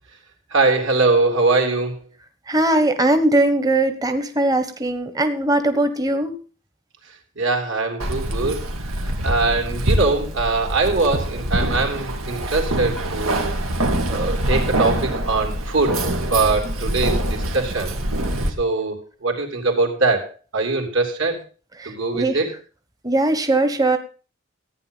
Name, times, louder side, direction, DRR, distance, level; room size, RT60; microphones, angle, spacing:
voice 1, 0.5-2.0 7.4-13.6 14.1-16.0 16.3-18.0 18.6-21.4 21.8-22.5, right 3 dB, 65° right, 3 dB, 3.6 m, -22 dB
voice 2, 2.5-6.4 16.7-16.8 21.8-22.4 23.0-24.0, right 2 dB, 15° right, 8 dB, 1.2 m, -20 dB
Keys jangling, 8.0-18.5, right 1 dB, 90° right, 2.6 m, -24 dB
15.0 x 9.6 x 5.6 m, 0.37 s
head